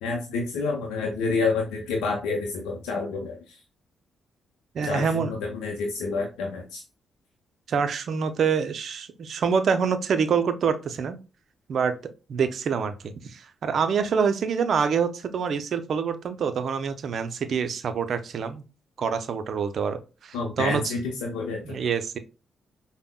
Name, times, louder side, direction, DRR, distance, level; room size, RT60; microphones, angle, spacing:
voice 1, 0.0-3.6 4.8-6.8 20.3-21.8, left 4 dB, 85° left, 0 dB, 0.6 m, -29 dB
voice 2, 4.7-5.3 7.7-11.2 11.7-11.9 12.3-18.6 19.0-20.9 21.6-22.2, right 6 dB, 65° right, 10 dB, 0.4 m, -26 dB
5.1 x 2.0 x 2.2 m, 0.31 s
hypercardioid pair, 45°, 0 cm